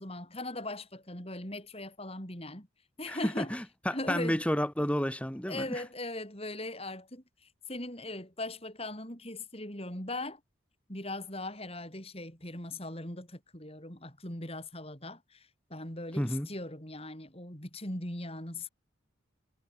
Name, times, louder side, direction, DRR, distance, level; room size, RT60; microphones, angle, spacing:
voice 1, 0.0-2.7 3.0-3.5 3.9-4.4 5.5-10.4 10.9-18.7, left 2 dB, 30° left, 7.5 m, -39 dB
voice 2, 3.1-5.8 16.2-16.5, equal, 5° left, 1.8 m, -31 dB
head